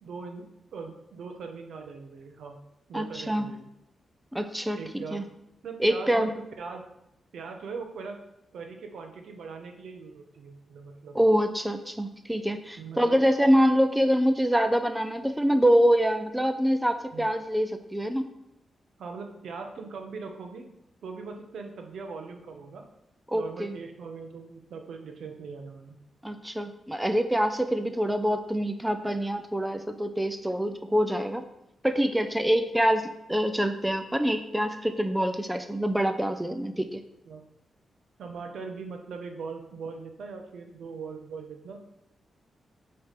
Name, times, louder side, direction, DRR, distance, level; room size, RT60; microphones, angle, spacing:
voice 1, 0.0-2.6 2.9-3.6 4.8-5.2 5.6-6.3 6.6-6.9 7.3-8.2 8.5-11.2 12.8-13.2 17.1-17.3 19.0-20.7 21.0-22.9 23.3-26.0 36.7-36.9 37.3-37.4 38.2-41.8, right 5 dB, 75° right, 4 dB, 1.0 m, -40 dB
voice 2, 2.9-3.5 4.3-5.2 5.8-6.3 11.1-18.3 23.3-23.8 26.2-31.4 31.8-37.0, equal, 5° right, 8 dB, 0.4 m, -25 dB
8.5 x 3.4 x 5.8 m, 0.84 s
wide cardioid pair, 155°, 0 cm